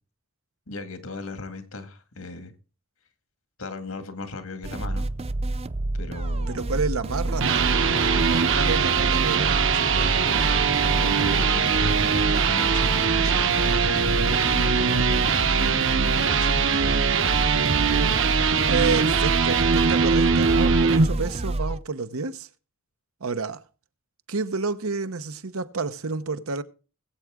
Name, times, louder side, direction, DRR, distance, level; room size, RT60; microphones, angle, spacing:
voice 1, 0.7-2.5 3.6-5.1 5.9-7.0 8.3-8.5 10.8-14.2 14.5-16.6, left 3 dB, 80° left, 2.1 m, -38 dB
sound 1, 4.6-21.8, right 2 dB, 30° right, 0.5 m, -28 dB
voice 2, 6.5-7.8 8.2-10.7 18.7-22.5 23.2-23.6 24.3-26.6, right 4 dB, 90° right, 1.0 m, -30 dB
sound 2, 7.1-21.1, right 6 dB, 65° right, 1.1 m, -22 dB
20.5 x 8.2 x 3.7 m
head